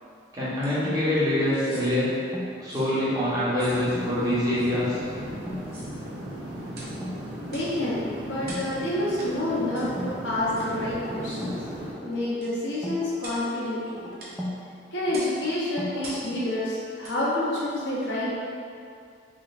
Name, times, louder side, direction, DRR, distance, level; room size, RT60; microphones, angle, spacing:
voice 1, 0.3-2.1 2.6-5.0, left 1 dB, 20° right, -9 dB, 0.8 m, -25 dB
sound 1, 0.6-0.8 1.4-1.9 2.7-2.9 3.6-3.8 4.5-4.7 5.6-6.0 6.7-7.0 7.5-7.8 8.4-8.7 9.2-9.3 9.8-9.9 10.6-10.7 11.3-11.5 12.4-12.6 13.2-13.5 14.2-14.4 15.1-15.4 16.0-16.3 17.0-17.2 17.7-17.8, right 1 dB, 55° right, 0.7 m, -43 dB
sound 2, 0.8-2.7 3.9-4.2 4.5-4.8 5.3-5.6 5.9-6.3 6.8-7.2 8.4-9.2 10.0-11.6 11.9-14.6 15.1-16.5, left 1 dB, ahead, 0.3 m, -39 dB
sound 3, 3.6-11.9, right 1 dB, 90° right, 0.8 m, -37 dB
voice 2, 7.4-11.5 12.0-13.8 14.9-18.3, left 1 dB, 85° left, -7 dB, 0.9 m, -28 dB
3.8 x 3.1 x 2.4 m, 2.4 s
head